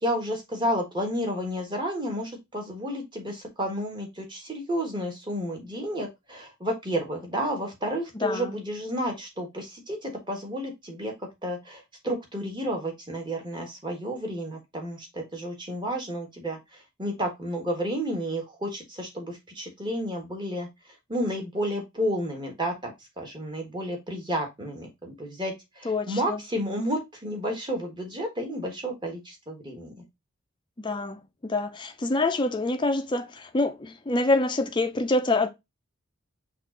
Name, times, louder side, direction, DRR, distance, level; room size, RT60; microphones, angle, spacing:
voice 1, 0.0-11.1 11.4-16.6 17.0-20.7 21.1-29.9, equal, 20° right, 1.3 m, -31 dB
voice 2, 8.2-8.6 25.9-26.4 30.8-35.5, left 2 dB, 20° left, 0.4 m, -26 dB
5.8 x 2.5 x 3.7 m
head